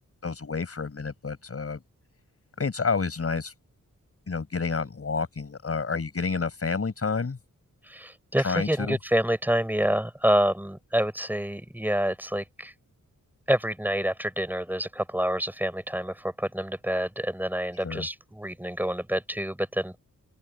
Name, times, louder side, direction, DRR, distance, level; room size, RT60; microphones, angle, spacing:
voice 1, 0.2-1.8 2.6-3.5 4.3-7.4 8.4-9.0 17.8-18.1, left 4 dB, 45° left, 4.7 m, -29 dB
voice 2, 7.8-12.7 13.5-20.0, equal, 5° right, 5.8 m, -27 dB
open air
wide cardioid pair, 125°, 31 cm